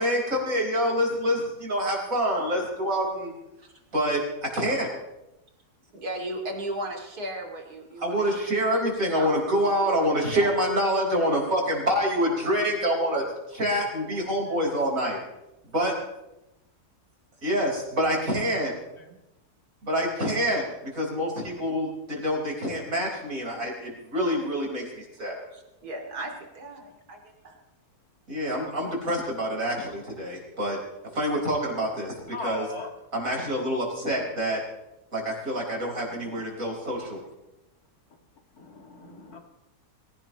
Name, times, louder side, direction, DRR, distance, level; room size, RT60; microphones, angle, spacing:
voice 1, 0.0-3.3 3.9-4.9 8.0-15.2 15.7-15.9 17.4-18.7 19.8-25.4 28.3-30.8 31.1-32.1 32.4-32.7 33.1-34.6 35.1-37.2, equal, 60° right, -2 dB, 5.2 m, -26 dB
voice 2, 5.9-9.5 9.8-10.5 11.2-11.5 12.4-12.6 14.1-14.2 25.5-27.2 27.4-27.5, right 1 dB, 80° right, 1 dB, 3.2 m, -37 dB
voice 3, 32.2-32.9 34.0-34.3 36.0-36.4 38.5-39.4, left 3 dB, 70° left, 3 dB, 2.5 m, -40 dB
24.0 x 17.0 x 3.1 m, 0.94 s
omnidirectional pair, 1.6 m